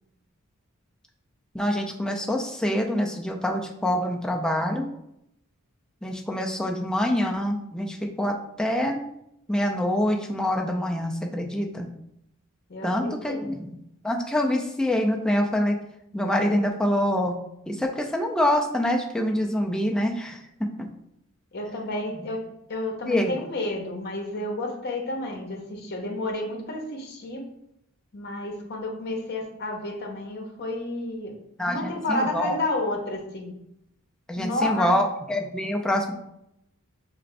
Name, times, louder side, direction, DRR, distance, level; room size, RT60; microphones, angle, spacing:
voice 1, 1.5-4.9 6.0-9.0 9.5-11.9 12.8-13.8 14.0-15.8 16.1-17.3 17.7-20.5 20.8-20.9 23.1-23.4 31.6-32.6 34.3-36.1, left 1 dB, 5° left, 1 dB, 0.3 m, -25 dB
voice 2, 12.7-13.4 21.5-22.4 22.7-27.5 28.1-31.3 31.7-33.5 34.4-34.9, left 2 dB, 50° left, 1 dB, 0.7 m, -31 dB
4.7 x 2.5 x 3.3 m, 0.81 s
head